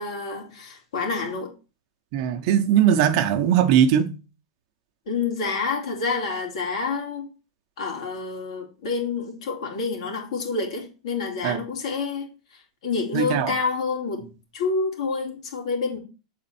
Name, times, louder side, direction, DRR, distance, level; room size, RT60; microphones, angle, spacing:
voice 1, 0.0-1.5 5.1-7.3 7.8-12.3 12.5-14.2 14.5-16.0, left 4 dB, 75° left, 2.7 m, -28 dB
voice 2, 2.1-4.1 11.4-11.6 13.1-13.5, right 9 dB, 45° right, 0.8 m, -20 dB
7.3 x 4.3 x 4.3 m
supercardioid pair, 150°, 3 cm